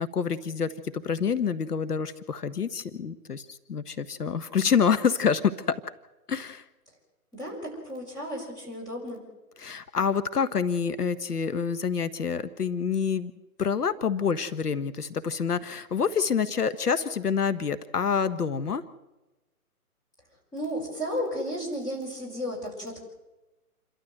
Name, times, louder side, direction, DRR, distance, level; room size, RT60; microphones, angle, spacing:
voice 1, 0.0-5.8 6.3-6.6 9.6-13.3 13.6-18.8, left 6 dB, 80° left, 13 dB, 1.4 m, -27 dB
voice 2, 7.3-9.2 20.5-23.0, equal, 10° left, -3 dB, 5.8 m, -33 dB
28.5 x 13.0 x 7.9 m, 1.0 s
hypercardioid pair, 155°, 45 cm